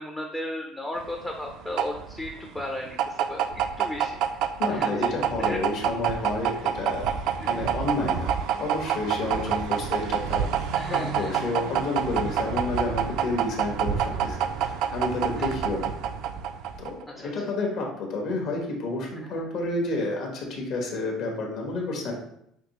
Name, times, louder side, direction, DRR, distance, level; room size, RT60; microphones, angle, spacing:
voice 1, 0.0-5.6 7.4-7.6 9.3-9.5 10.7-11.4 15.4-15.6 17.1-17.3 19.2-19.4, left 1 dB, 10° left, 1 dB, 0.4 m, -36 dB
sound 1, 1.0-17.0, right 8 dB, 65° right, 0.3 m, -27 dB
voice 2, 4.6-15.9 16.8-22.1, left 2 dB, 60° left, 0 dB, 1.2 m, -30 dB
5.9 x 2.7 x 3.0 m, 0.74 s
cardioid pair, 150°, 0 cm